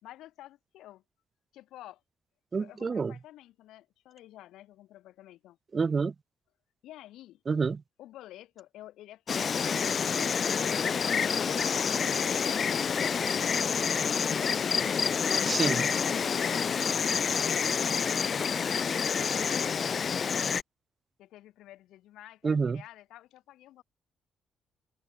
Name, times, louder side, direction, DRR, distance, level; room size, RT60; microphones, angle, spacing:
voice 1, 0.0-1.0 1.5-2.0 2.5-5.6 6.8-7.4 8.0-9.6 14.6-14.8 16.2-18.7 19.4-20.3 21.2-23.8, left 14 dB, 85° left, 3.3 m, -49 dB
voice 2, 2.5-3.1 5.7-6.1 7.5-7.8 15.4-15.9 22.4-22.8, right 5 dB, 35° right, 0.4 m, -28 dB
Insect, 9.3-20.6, left 6 dB, 45° left, 0.7 m, -28 dB
cardioid pair, 90°, 0 cm